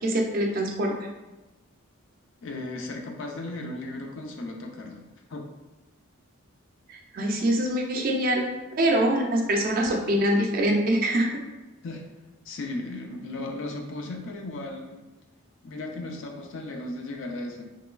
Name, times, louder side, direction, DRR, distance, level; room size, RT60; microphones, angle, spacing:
voice 1, 0.0-0.9 7.1-8.5 8.8-11.3, right 1 dB, 45° right, 2 dB, 0.3 m, -24 dB
voice 2, 2.4-5.0 5.3-5.5 11.8-12.0 12.4-15.0 15.6-17.6, left 2 dB, 65° left, 2 dB, 0.4 m, -36 dB
3.0 x 2.2 x 2.3 m, 1.1 s
head